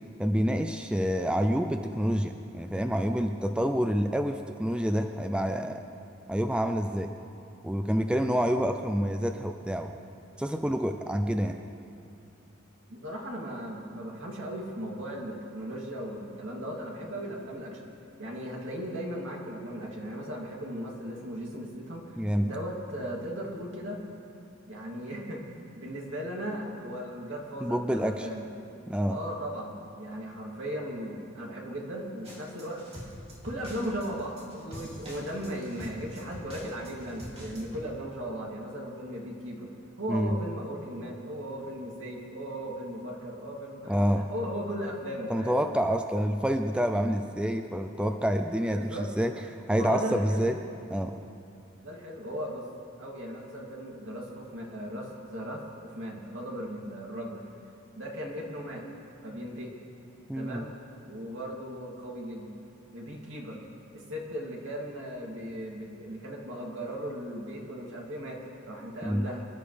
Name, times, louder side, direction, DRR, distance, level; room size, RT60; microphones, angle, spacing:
voice 1, 0.2-5.8 6.3-7.1 7.6-9.9 10.4-11.6 22.2-22.5 27.6-28.3 28.9-29.2 40.1-40.4 43.9-44.3 45.3-48.9 49.2-50.6 50.9-51.1 60.3-60.7 69.0-69.2, equal, 5° right, 6 dB, 0.4 m, -27 dB
voice 2, 12.9-17.9 18.2-24.0 24.7-25.4 25.8-28.5 29.1-32.8 33.4-39.7 40.0-45.6 48.7-49.1 49.7-50.4 51.8-52.7 53.0-57.4 57.9-58.8 59.2-59.8 60.3-60.7 61.0-62.5 62.9-63.6 63.9-69.5, equal, 65° right, -3 dB, 2.7 m, -37 dB
sound 1, 32.2-37.8, equal, 30° right, 2.6 m, -44 dB
25.0 x 11.5 x 3.4 m, 2.6 s
head